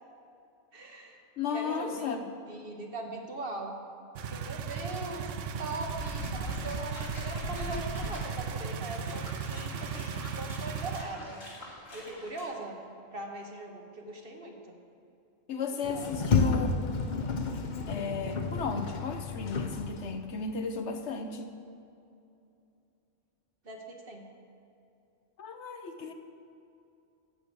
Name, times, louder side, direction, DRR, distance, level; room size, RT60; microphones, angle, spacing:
voice 1, 0.7-1.2 1.5-3.8 4.3-11.4 11.9-12.7 13.1-14.7 15.9-16.3 23.6-24.2, right 2 dB, 50° right, 2 dB, 1.4 m, -40 dB
voice 2, 1.4-2.2 15.5-16.9 17.9-21.5 25.4-26.1, left 5 dB, 65° left, 6 dB, 1.1 m, -34 dB
sound 1, 4.2-11.0, right 6 dB, 80° right, 1.0 m, -36 dB
sound 2, 5.8-12.4, left 1 dB, 90° left, 3.0 m, -43 dB
Sliding door, 15.8-20.3, left 4 dB, 45° left, 0.7 m, -31 dB
14.5 x 4.9 x 8.3 m, 2.6 s
omnidirectional pair, 1.3 m